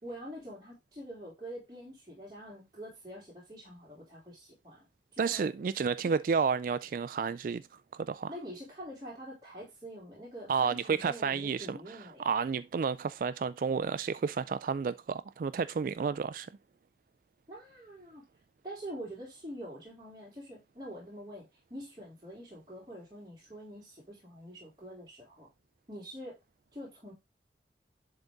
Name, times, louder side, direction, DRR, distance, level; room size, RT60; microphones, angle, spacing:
voice 1, 0.0-5.5 6.0-6.2 8.3-12.3 17.5-18.2 18.6-25.5 25.9-26.4 26.7-27.1, equal, 25° right, 3.8 m, -45 dB
voice 2, 5.2-7.6 7.9-8.3 10.5-16.5, right 5 dB, 50° right, 0.3 m, -31 dB
11.0 x 4.0 x 3.4 m
head